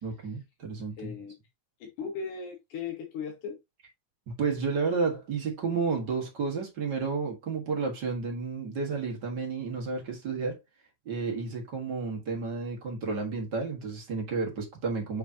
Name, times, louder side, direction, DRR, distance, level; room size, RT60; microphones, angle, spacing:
voice 1, 0.0-1.1 4.4-10.6 11.0-15.2, right 4 dB, 40° right, 1.8 m, -31 dB
voice 2, 1.0-1.3 1.8-3.6, left 6 dB, 90° left, 2.8 m, -37 dB
7.2 x 5.2 x 2.8 m
omnidirectional pair, 3.4 m